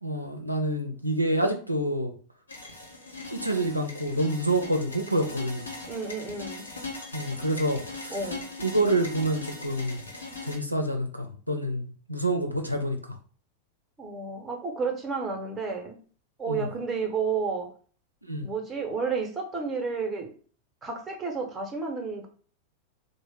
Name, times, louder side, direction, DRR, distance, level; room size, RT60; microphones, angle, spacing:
voice 1, 0.0-2.1 3.3-5.7 7.1-8.2 8.6-10.0 10.4-13.0 16.5-16.7 18.3-18.5, right 1 dB, 90° right, 3 dB, 0.4 m, -27 dB
sound 1, 2.5-10.6, left 3 dB, 75° left, 0.7 m, -40 dB
voice 2, 5.9-6.6 8.1-8.4 14.0-16.0 16.4-17.7 18.4-20.3 20.8-22.3, right 5 dB, 15° right, 3 dB, 0.7 m, -31 dB
2.9 x 2.1 x 3.3 m, 0.42 s
figure-of-eight pair, 90°, 0 cm